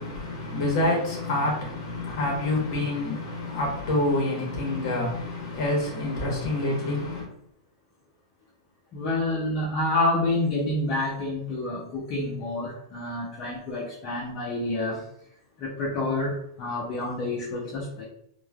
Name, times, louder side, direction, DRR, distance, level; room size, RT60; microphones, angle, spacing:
voice 1, 0.0-7.3, left 2 dB, 45° left, 1.0 m, -27 dB
voice 2, 8.9-15.0 15.6-18.1, left 2 dB, 30° left, 0.4 m, -28 dB
3.0 x 2.1 x 2.2 m
supercardioid pair, 165°, 3 cm